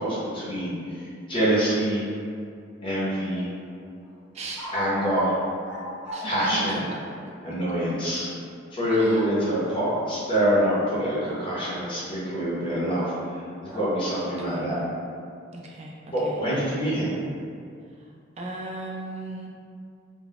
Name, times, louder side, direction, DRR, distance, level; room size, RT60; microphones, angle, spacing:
voice 1, 0.0-2.1 2.8-3.5 4.7-5.4 6.2-6.8 7.4-8.3 8.7-14.8 16.1-17.2, equal, 25° left, -9 dB, 0.8 m, -25 dB
sound 1, 3.2-3.7 4.0-4.2 4.6-4.9 5.7-7.3 9.6-11.8 13.7-14.3, equal, 5° right, 0.9 m, -41 dB
voice 2, 4.3-4.7 6.1-6.8 8.9-9.3 14.3-14.6 15.5-16.4 18.0-18.1 18.4-19.5, right 2 dB, 35° right, -1 dB, 0.3 m, -37 dB
2.2 x 2.2 x 3.8 m, 2.4 s
head